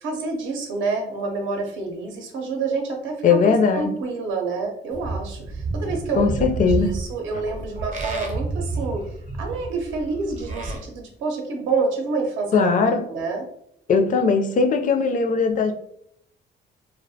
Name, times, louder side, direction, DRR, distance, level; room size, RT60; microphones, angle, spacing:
voice 1, 0.0-6.3 6.9-9.1 9.4-12.7 13.0-13.4, right 4 dB, 80° right, 2 dB, 0.6 m, -28 dB
voice 2, 3.2-4.0 6.2-6.9 12.5-13.0 13.9-15.7, left 5 dB, 40° left, 6 dB, 0.4 m, -19 dB
Livestock farm animals working animals, 4.9-10.8, right 3 dB, 40° right, 0.6 m, -30 dB
2.4 x 2.1 x 2.6 m, 0.71 s
cardioid pair, 90°, 20 cm